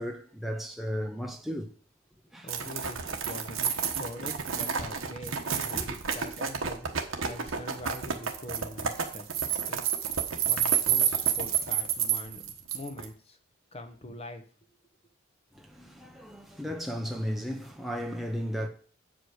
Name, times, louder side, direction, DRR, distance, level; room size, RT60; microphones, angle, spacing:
voice 1, 0.0-1.7 2.3-2.5 4.3-4.4 5.7-6.0 15.5-18.7, equal, ahead, 0.8 m, -35 dB
voice 2, 2.4-3.7 4.0-10.0 10.5-13.4 13.7-14.4, left 1 dB, 30° left, 1.1 m, -43 dB
sound 1, 2.5-13.1, right 8 dB, 85° right, 1.2 m, -29 dB
8.2 x 5.0 x 6.3 m
head